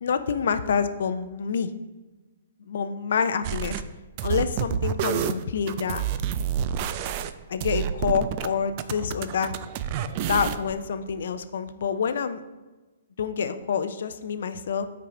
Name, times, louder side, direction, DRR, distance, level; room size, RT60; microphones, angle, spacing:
voice 1, 0.0-1.7 2.7-3.8 4.2-6.0 7.5-9.5 10.3-12.4 13.2-14.9, left 6 dB, 65° left, 11 dB, 0.5 m, -27 dB
sound 1, 3.4-3.8 4.2-8.5 8.8-10.7, right 9 dB, 40° right, 0.4 m, -29 dB
9.3 x 4.6 x 3.8 m, 1.2 s
hypercardioid pair, 130°, 0 cm